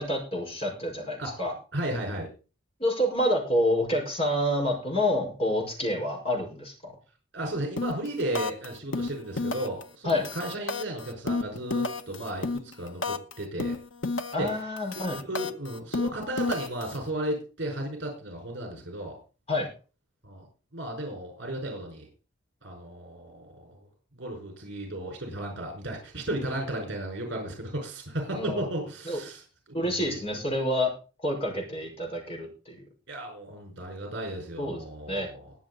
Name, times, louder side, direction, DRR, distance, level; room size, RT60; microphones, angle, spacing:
voice 1, 0.0-1.5 2.8-6.9 10.0-10.2 14.3-15.2 19.5-19.7 28.3-28.6 29.1-29.2 29.7-30.9 31.2-32.8 34.6-34.8 35.1-35.3, left 1 dB, 30° left, 0 dB, 5.3 m, -28 dB
voice 2, 1.7-2.3 7.3-13.8 14.4-14.7 15.0-19.2 20.2-20.5 20.7-22.1 22.6-23.9 24.1-29.4 29.8-30.2 33.1-35.5, right 1 dB, 60° right, 2 dB, 5.2 m, -34 dB
sound 1, 7.8-8.1 8.4-8.7 8.9-9.8 10.1-13.3 13.6-14.5 14.8-17.0, left 3 dB, 80° left, 1.2 m, -30 dB
21.5 x 7.2 x 4.1 m, 0.34 s
head